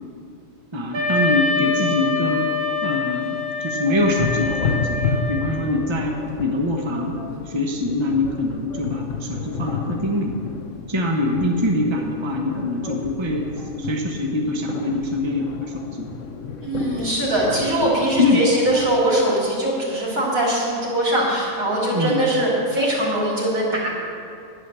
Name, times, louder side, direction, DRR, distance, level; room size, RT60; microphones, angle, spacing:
voice 1, 0.7-2.5 2.8-5.0 5.3-7.1 7.5-10.4 10.9-13.5 13.8-16.1 18.2-18.5 21.9-22.2, left 2 dB, 20° right, 1 dB, 1.2 m, -24 dB
Wind instrument woodwind instrument, 0.9-5.8, left 3 dB, 45° right, 2.8 m, -25 dB
sound 1, 3.9-19.1, left 5 dB, 70° left, 1.1 m, -31 dB
voice 2, 16.6-23.9, right 1 dB, 85° right, -5 dB, 3.6 m, -21 dB
10.0 x 9.9 x 6.9 m, 2.5 s
omnidirectional pair, 1.4 m